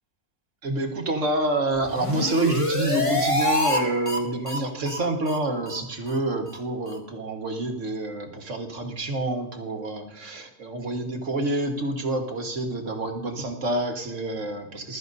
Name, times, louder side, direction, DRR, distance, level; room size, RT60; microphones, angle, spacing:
voice 1, 0.6-15.0, right 2 dB, 50° right, 3 dB, 1.9 m, -28 dB
sound 1, 1.8-3.8 4.1-4.2 4.5-4.6 4.9-5.0 5.3-5.4 5.7-5.8 6.1-6.2 6.5-6.6 6.9-7.0, left 1 dB, 20° left, 1.5 m, -26 dB
20.5 x 12.5 x 2.7 m, 0.91 s
omnidirectional pair, 1.6 m